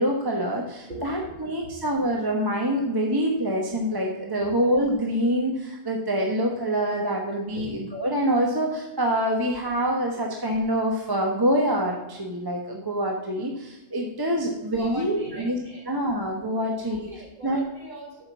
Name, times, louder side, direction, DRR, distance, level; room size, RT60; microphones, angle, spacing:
voice 1, 0.0-15.6 15.8-17.0 17.4-17.6, equal, 20° right, 0 dB, 1.1 m, -25 dB
voice 2, 0.9-1.3 7.5-7.7 14.7-15.8 16.6-18.3, equal, 45° right, -3 dB, 3.0 m, -40 dB
7.8 x 5.8 x 6.9 m, 1.0 s
omnidirectional pair, 1.3 m